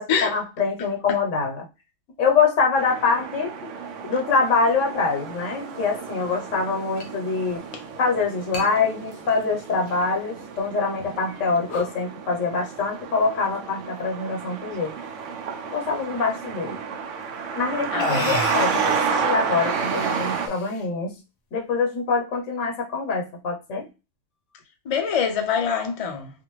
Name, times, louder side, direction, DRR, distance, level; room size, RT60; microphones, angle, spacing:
voice 1, 0.0-1.7 2.2-3.7 4.0-7.6 8.0-14.9 15.7-16.8 17.6-21.2 21.5-23.9, left 4 dB, 85° left, 1.1 m, -24 dB
sound 1, 2.8-20.5, right 6 dB, 80° right, 0.9 m, -31 dB
sound 2, 5.3-5.4 7.0-7.1 7.5-7.6 8.5-8.7 9.1-9.9 10.4-10.5 11.1-11.3 11.7-12.0 13.2-13.7 14.5-14.9 16.8-16.9 17.6-17.7 18.0-19.0 19.5-20.9, left 2 dB, 65° left, 0.9 m, -33 dB
voice 2, 17.9-18.3 18.6-18.8 24.9-26.3, left 7 dB, 50° left, 0.4 m, -25 dB
2.5 x 2.5 x 2.9 m
omnidirectional pair, 1.3 m